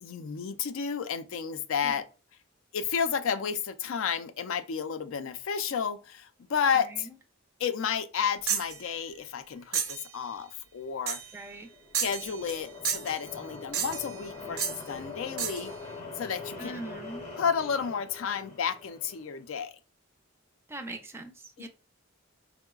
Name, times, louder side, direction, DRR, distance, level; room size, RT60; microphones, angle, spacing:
voice 1, 0.0-2.1 2.7-7.1 7.6-11.2 12.0-15.7 16.2-16.8 17.3-19.8 21.6-21.7, left 7 dB, 65° left, 0.4 m, -31 dB
voice 2, 6.8-7.1 11.3-11.7 16.6-17.2 20.7-21.7, right 2 dB, 10° right, 0.4 m, -41 dB
sound 1, 8.5-8.8 9.7-10.0 11.1-11.3 11.9-12.6 12.8-13.2 13.7-14.1 14.6-14.8 15.4-15.7, right 7 dB, 80° right, 0.6 m, -31 dB
sound 2, 11.5-19.4, left 4 dB, 30° left, 0.7 m, -43 dB
4.5 x 2.0 x 2.2 m
head